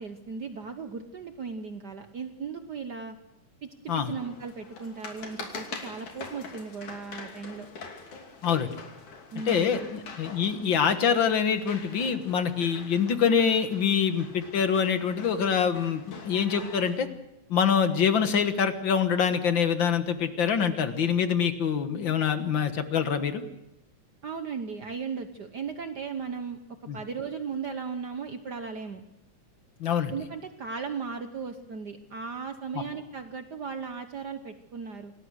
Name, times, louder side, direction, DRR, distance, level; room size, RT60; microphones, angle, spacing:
voice 1, 0.0-3.2 3.6-7.7 9.3-9.9 24.2-26.6 26.9-29.0 30.1-35.1, right 5 dB, 80° right, 7 dB, 0.9 m, -36 dB
sound 1, 3.9-17.0, left 4 dB, 85° left, 4.3 m, -44 dB
voice 2, 9.5-17.1 17.5-23.4 26.9-27.0 29.8-30.1 32.8-32.9, left 7 dB, 50° left, 9 dB, 1.8 m, -25 dB
27.0 x 18.5 x 6.4 m, 0.88 s
omnidirectional pair, 3.4 m